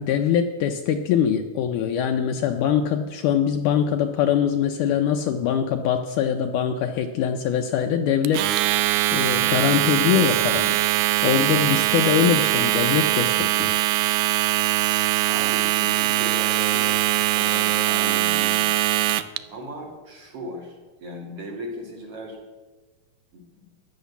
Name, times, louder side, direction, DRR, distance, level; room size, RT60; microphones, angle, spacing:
voice 1, 0.0-10.8 11.2-13.8, left 8 dB, 75° left, 5 dB, 2.0 m, -23 dB
Domestic sounds home sounds, 8.2-19.4, right 15 dB, 85° right, 1.7 m, -22 dB
voice 2, 15.3-17.0 17.3-18.7 19.5-22.4 23.3-23.7, equal, 45° right, -1 dB, 3.3 m, -37 dB
14.0 x 10.5 x 7.0 m, 1.2 s
omnidirectional pair, 4.1 m